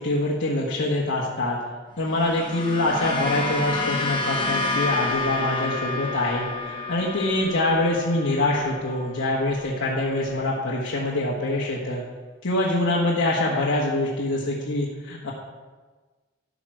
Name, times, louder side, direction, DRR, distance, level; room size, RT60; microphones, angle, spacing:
voice 1, 0.0-1.6 2.0-12.0 12.4-15.3, left 2 dB, 65° left, -5 dB, 1.3 m, -24 dB
sound 1, 2.0-10.5, left 3 dB, 20° left, 1.1 m, -30 dB
12.0 x 6.3 x 4.7 m, 1.3 s
head